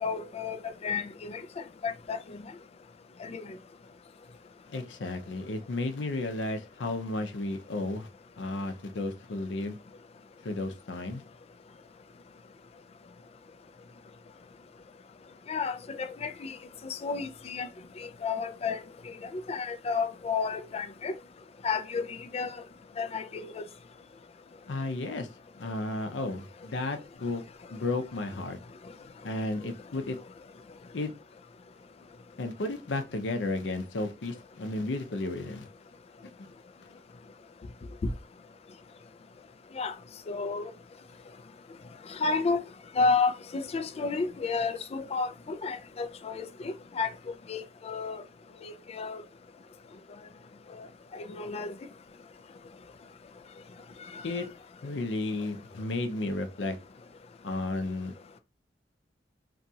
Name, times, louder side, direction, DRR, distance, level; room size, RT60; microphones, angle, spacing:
voice 1, 0.0-1.4 1.8-2.4 3.2-3.4 15.5-16.6 16.8-17.7 18.0-18.8 19.3-21.1 21.6-22.5 23.0-23.6 39.8-39.9 40.3-40.7 42.2-42.6 43.0-47.1 47.5-48.2 48.6-49.2 51.1-51.7, left 4 dB, 35° left, 0.3 m, -31 dB
voice 2, 4.7-8.1 8.4-9.8 10.4-11.2 24.7-25.3 25.6-27.4 27.7-28.6 29.2-30.2 30.9-31.1 32.4-35.7 36.2-36.5 54.2-54.5 54.8-56.8 57.4-58.1, left 2 dB, 80° left, 0.6 m, -33 dB
2.8 x 2.3 x 2.7 m
head